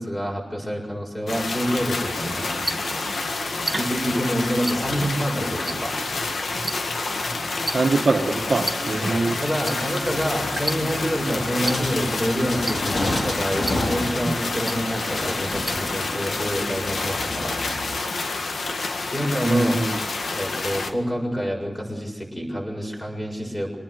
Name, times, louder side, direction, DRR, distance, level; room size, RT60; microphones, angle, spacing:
voice 1, 0.0-2.8 3.7-6.0 9.1-17.6 19.1-19.8 20.3-23.8, equal, 15° left, 0 dB, 7.0 m, -27 dB
sound 1, 1.3-20.9, left 3 dB, 75° left, 1.9 m, -29 dB
sound 2, 2.0-16.3, right 2 dB, 30° right, 1.1 m, -35 dB
voice 2, 7.7-9.4 19.4-20.0, right 3 dB, 50° right, 2 dB, 1.7 m, -23 dB
sound 3, 11.6-18.0, left 1 dB, 50° left, 3.9 m, -30 dB
25.5 x 19.0 x 8.0 m, 1.3 s
wide cardioid pair, 130°, 0 cm